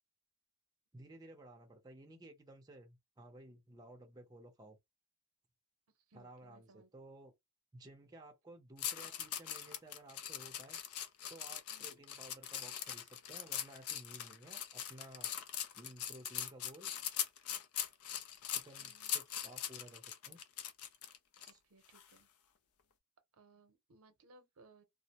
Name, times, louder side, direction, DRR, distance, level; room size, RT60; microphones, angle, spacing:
voice 1, 0.9-4.8 6.1-7.3 7.7-10.8 11.3-16.9 18.5-20.4 21.4-21.6, right 1 dB, 15° right, 0.5 m, -56 dB
voice 2, 6.1-6.9 11.7-12.0 18.8-19.2 21.5-22.3 23.3-24.8, right 2 dB, 75° right, 0.7 m, -64 dB
sound 1, 8.8-21.5 21.9-22.2, left 9 dB, 80° left, 0.5 m, -41 dB
2.3 x 2.0 x 2.8 m
head